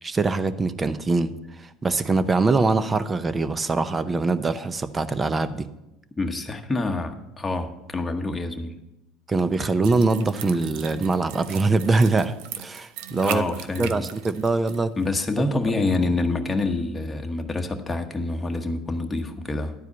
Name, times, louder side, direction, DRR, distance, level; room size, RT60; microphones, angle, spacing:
voice 1, 0.0-5.7 9.3-13.4 13.8-15.0 15.5-15.8, right 3 dB, 25° right, 13 dB, 0.6 m, -23 dB
voice 2, 6.2-8.8 13.2-14.1 15.0-19.7, left 2 dB, 15° left, 3 dB, 1.1 m, -27 dB
sound 1, 9.8-14.8 15.0-15.1, right 10 dB, 75° right, 0.6 m, -38 dB
11.0 x 4.8 x 8.2 m, 0.91 s
supercardioid pair, 100°, 0 cm